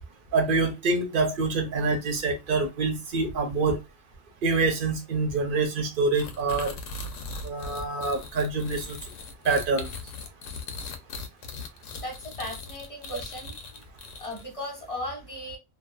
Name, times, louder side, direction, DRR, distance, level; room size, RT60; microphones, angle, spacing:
voice 1, 0.3-3.8 4.4-6.8 7.4-9.0 9.4-9.9, right 3 dB, 55° right, 6 dB, 0.7 m, -26 dB
sound 1, 6.1-14.6, left 3 dB, 85° left, 0.9 m, -39 dB
voice 2, 12.0-13.5 14.2-15.6, left 1 dB, 30° left, -1 dB, 1.0 m, -37 dB
2.6 x 2.3 x 2.2 m, 0.22 s
omnidirectional pair, 1.2 m